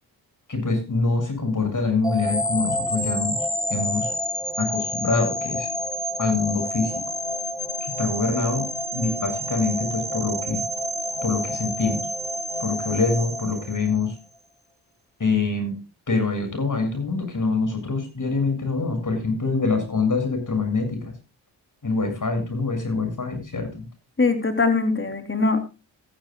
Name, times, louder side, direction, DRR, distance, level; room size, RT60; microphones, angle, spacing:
voice 1, 0.5-3.4 3.7-4.1 4.6-5.7 6.2-6.9 8.0-8.7 8.9-10.6 11.2-12.0 12.6-14.1 15.2-15.8 16.1-21.1 21.8-23.9, left 4 dB, 45° left, 7 dB, 7.3 m, -25 dB
sound 1, 2.0-14.2, equal, 10° left, 2.3 m, -29 dB
voice 2, 24.2-25.6, left 3 dB, 25° left, 7 dB, 3.8 m, -21 dB
15.5 x 15.0 x 2.4 m, 0.30 s
supercardioid pair, 50°, 44 cm